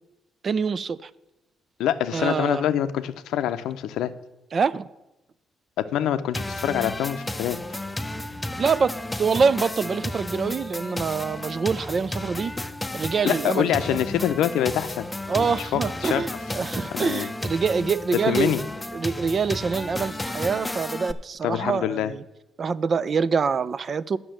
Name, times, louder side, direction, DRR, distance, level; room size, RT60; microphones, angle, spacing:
voice 1, 0.4-1.1 2.1-2.6 4.5-4.9 8.6-12.5 12.9-14.0 15.3-18.6 18.9-22.2 22.6-24.2, right 5 dB, 45° right, 17 dB, 0.4 m, -25 dB
voice 2, 1.8-4.1 5.8-7.6 13.2-15.1 15.3-16.2 16.9-17.3 18.3-18.6 21.4-22.1, left 10 dB, 85° left, 12 dB, 0.6 m, -25 dB
sound 1, 6.3-21.1, left 1 dB, 10° left, 0.6 m, -33 dB
8.8 x 6.1 x 7.7 m, 0.95 s
cardioid pair, 90°, 0 cm